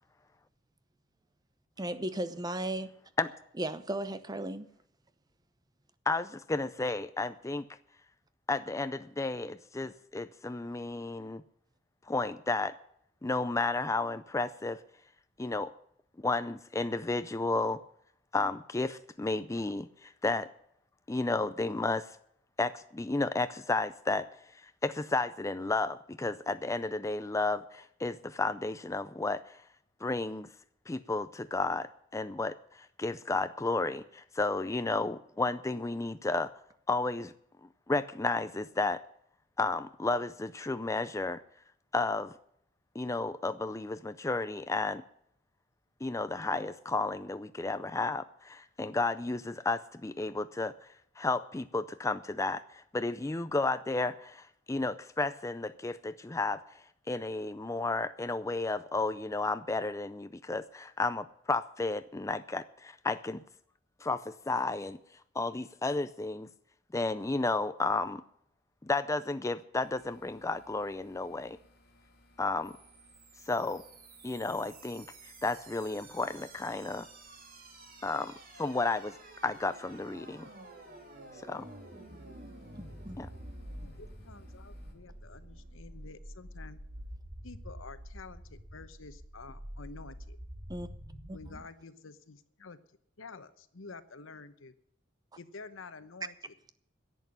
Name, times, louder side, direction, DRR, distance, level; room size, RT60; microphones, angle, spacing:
voice 1, 1.8-2.9 3.6-4.7 82.8-83.2 90.7-90.9, right 1 dB, 20° right, 13 dB, 0.7 m, -35 dB
voice 2, 6.1-7.7 8.5-11.4 12.1-12.8 13.2-14.8 15.4-15.7 16.2-17.8 18.3-20.5 21.1-22.2 22.6-24.3 24.5-29.6 30.0-30.5 30.9-36.5 36.9-37.3 37.6-39.0 39.6-41.4 41.9-42.3 42.9-45.0 46.0-50.9 51.2-63.4 64.0-65.0 65.3-66.5 66.9-68.2 68.8-71.6 72.4-72.7 73.5-73.8 74.2-77.1 78.0-80.5 81.4-81.6 83.2-83.3, left 3 dB, 15° left, 11 dB, 0.4 m, -32 dB
sound 1, 69.7-84.9, left 1 dB, 55° left, 2.8 m, -64 dB
sound 2, 72.6-91.6, right 1 dB, 45° right, 2.6 m, -48 dB
voice 3, 83.6-86.8 87.4-90.4 91.3-92.8 93.2-94.7 95.4-96.3, left 4 dB, 90° left, 13 dB, 1.0 m, -49 dB
11.0 x 8.2 x 10.0 m, 0.68 s
head